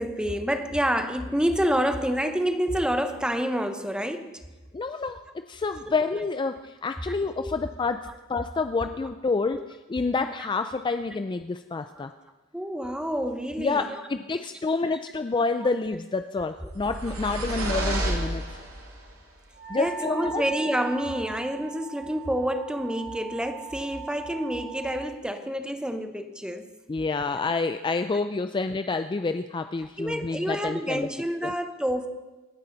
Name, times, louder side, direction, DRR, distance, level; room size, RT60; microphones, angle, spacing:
voice 1, 0.0-4.4 5.0-5.1 5.9-6.0 7.4-7.5 8.1-8.2 8.8-9.1 9.5-9.6 10.2-10.3 12.0-12.1 12.5-14.0 14.9-15.0 15.6-15.7 17.1-17.2 19.8-26.7 30.0-32.1, equal, 5° right, 7 dB, 0.9 m, -28 dB
voice 2, 4.7-9.6 9.9-12.1 13.6-18.6 19.7-20.4 26.9-31.1 31.4-31.5, left 3 dB, 20° left, 9 dB, 0.4 m, -28 dB
sound 1, 16.6-19.0, right 1 dB, 85° right, 3.1 m, -30 dB
Wind instrument woodwind instrument, 19.5-25.1, right 7 dB, 75° left, 2.6 m, -40 dB
26.0 x 9.7 x 4.0 m, 1.2 s
head